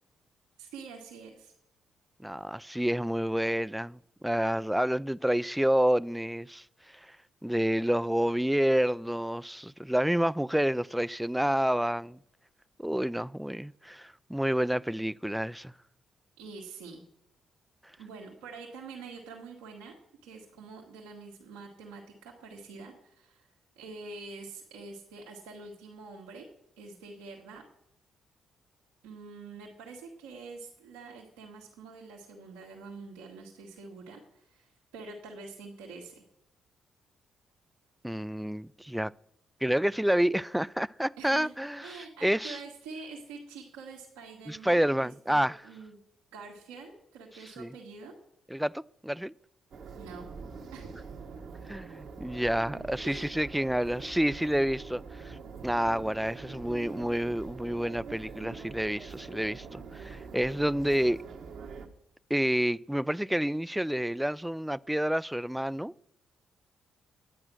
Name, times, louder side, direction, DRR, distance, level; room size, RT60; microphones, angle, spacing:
voice 1, 0.6-1.5 16.4-17.0 18.0-19.9 20.2-23.5 23.7-26.5 26.8-27.6 29.0-36.2 41.2-41.5 41.8-46.0 46.3-48.1 49.9-50.3 50.7-51.1 53.0-53.3, right 4 dB, 85° right, 1.7 m, -46 dB
voice 2, 2.2-6.6 7.4-12.2 12.8-15.7 38.0-39.1 39.6-42.6 44.5-45.6 47.6-47.7 48.5-49.3 51.7-55.4 55.6-61.2 62.3-65.9, equal, 5° right, 0.4 m, -29 dB
sound 1, 49.7-61.9, right 5 dB, 65° right, 1.3 m, -44 dB
11.0 x 8.8 x 6.2 m
hypercardioid pair, 50°, 0 cm